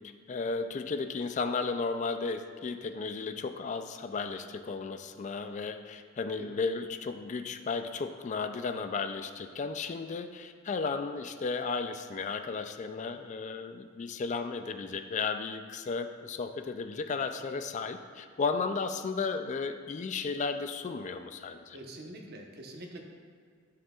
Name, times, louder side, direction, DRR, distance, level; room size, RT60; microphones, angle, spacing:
voice 1, 0.3-21.8, left 4 dB, 35° left, 8 dB, 0.3 m, -34 dB
voice 2, 21.7-23.0, right 1 dB, 50° right, 2 dB, 0.9 m, -45 dB
13.0 x 6.4 x 2.4 m, 2.1 s
head